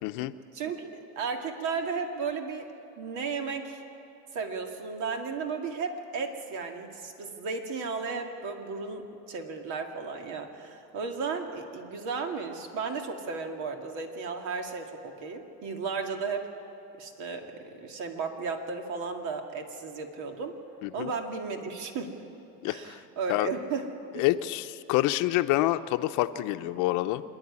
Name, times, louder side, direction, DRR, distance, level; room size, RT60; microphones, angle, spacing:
voice 1, 0.0-0.3 20.8-21.1 22.6-23.0 23.3-23.5 24.2-27.2, left 16 dB, 70° left, 10 dB, 0.8 m, -27 dB
voice 2, 0.5-2.7 3.0-3.8 4.3-16.5 17.0-20.6 20.9-22.2 22.6-23.9 24.1-24.3, right 4 dB, 65° right, 4 dB, 2.3 m, -34 dB
26.0 x 11.0 x 9.7 m, 2.7 s
cardioid pair, 120°, 32 cm